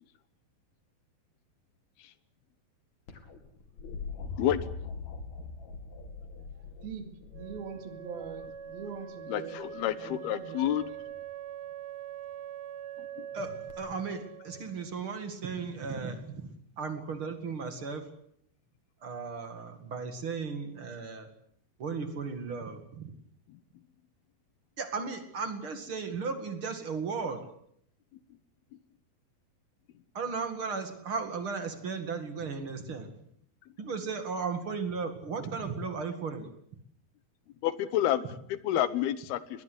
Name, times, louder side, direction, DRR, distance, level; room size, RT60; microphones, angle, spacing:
sound 1, 3.1-9.0 10.6-11.1 13.7-13.8, left 4 dB, 50° left, 3.3 m, -42 dB
voice 1, 6.5-7.1 7.3-10.9, right 6 dB, 75° right, 7 dB, 4.1 m, -43 dB
Wind instrument woodwind instrument, 7.3-15.1, right 9 dB, 55° right, 2.2 m, -43 dB
voice 2, 9.3-10.8 13.0-13.3 23.5-23.6 37.6-39.6, left 12 dB, 80° left, 15 dB, 3.0 m, -30 dB
voice 3, 13.3-16.5 16.8-18.1 19.0-21.3 21.8-23.1 24.8-27.5 30.1-33.1 33.8-36.5, right 5 dB, 40° right, 7 dB, 2.4 m, -35 dB
21.0 x 20.0 x 8.1 m, 0.68 s
omnidirectional pair, 4.4 m